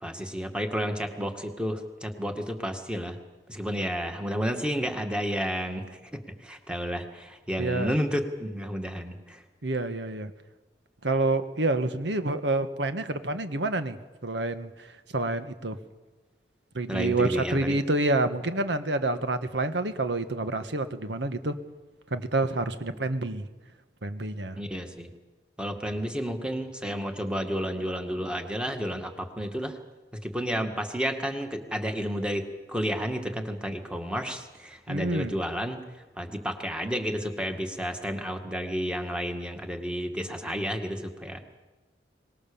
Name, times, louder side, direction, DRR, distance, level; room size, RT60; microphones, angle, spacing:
voice 1, 0.0-3.2 3.5-9.4 16.9-17.8 22.9-23.1 24.6-25.1 25.6-29.8 30.1-35.9 36.2-41.4, equal, 5° right, 5 dB, 2.0 m, -31 dB
voice 2, 7.6-7.9 9.6-10.3 11.0-15.8 16.7-21.6 22.1-23.5 24.0-24.6 34.9-35.3, right 2 dB, 85° right, 9 dB, 1.6 m, -28 dB
24.5 x 20.0 x 7.1 m, 1.2 s
head